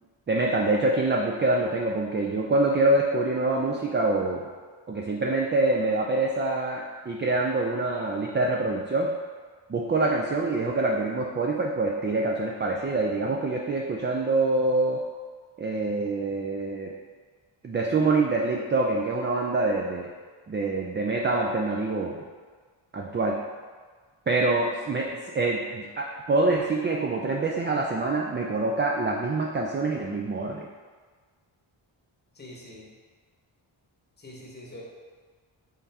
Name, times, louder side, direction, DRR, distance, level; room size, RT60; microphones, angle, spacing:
voice 1, 0.3-4.5 4.9-9.1 9.7-15.0 15.6-16.9 17.6-20.1 20.5-22.2 22.9-23.4 24.3-30.7, right 2 dB, 25° right, -1 dB, 0.3 m, -25 dB
voice 2, 32.3-32.9 34.2-34.8, left 1 dB, 20° left, -3 dB, 0.9 m, -44 dB
3.7 x 3.3 x 2.7 m, 1.5 s
cardioid pair, 55°, 50 cm